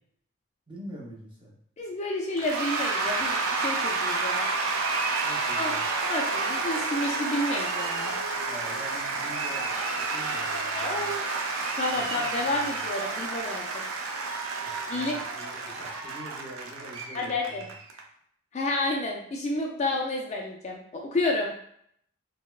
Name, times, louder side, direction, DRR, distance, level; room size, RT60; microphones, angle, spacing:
voice 1, 0.7-1.6 5.2-5.8 8.4-11.1 11.9-12.8 14.6-17.7, equal, 25° right, -4 dB, 0.7 m, -45 dB
voice 2, 1.8-4.5 5.5-5.7 6.0-8.2 10.8-11.3 11.8-13.8 14.9-15.2 17.1-17.7 18.5-21.5, left 2 dB, 35° left, 1 dB, 0.4 m, -30 dB
Cheering / Applause / Crowd, 2.4-18.0, right 3 dB, 85° right, 0.5 m, -30 dB
4.2 x 2.1 x 2.3 m, 0.67 s
head